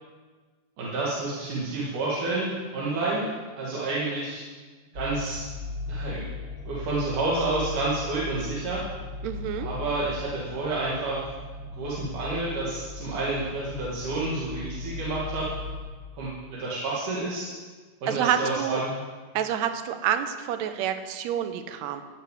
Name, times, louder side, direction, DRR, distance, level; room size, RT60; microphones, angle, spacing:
voice 1, 0.8-4.4 4.9-5.4 5.9-6.3 6.7-8.8 9.6-11.3 11.8-15.5 16.1-17.5 18.0-19.0, right 2 dB, 90° right, -7 dB, 3.6 m, -29 dB
sound 1, 4.9-15.8, left 3 dB, 45° right, 3.3 m, -37 dB
voice 2, 9.2-9.7 18.1-18.8 19.3-22.0, right 9 dB, 70° right, 8 dB, 2.0 m, -28 dB
14.0 x 6.8 x 8.1 m, 1.4 s
omnidirectional pair, 3.5 m